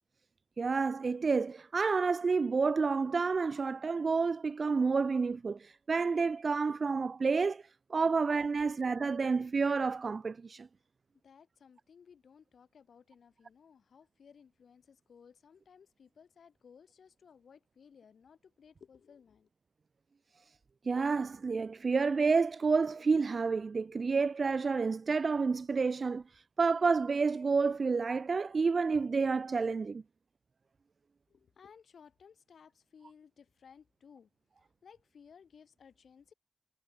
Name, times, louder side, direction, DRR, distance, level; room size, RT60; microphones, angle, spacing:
voice 1, 0.6-7.6 7.9-10.7 20.9-26.2 26.6-30.0, right 4 dB, 60° right, 0.3 m, -29 dB
voice 2, 11.2-19.5 31.3-34.3 34.6-36.3, left 6 dB, 80° left, 4.9 m, -59 dB
cardioid pair, 55°, 0 cm